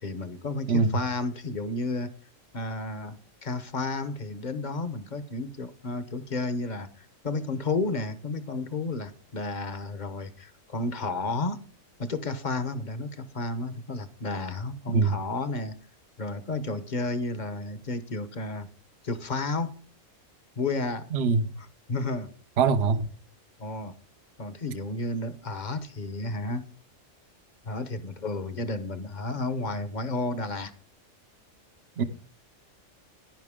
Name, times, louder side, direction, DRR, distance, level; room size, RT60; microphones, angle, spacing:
voice 1, 0.0-2.1 2.5-11.6 12.0-15.8 16.2-18.7 19.0-19.7 20.6-21.1 21.9-22.3 23.6-23.9 24.4-26.6 27.6-30.7, left 3 dB, 40° left, 1.0 m, -32 dB
voice 2, 0.7-1.0 14.9-15.2 21.1-21.5 22.6-23.1 32.0-32.1, right 5 dB, 55° right, 1.0 m, -23 dB
10.5 x 10.5 x 3.6 m
omnidirectional pair, 1.3 m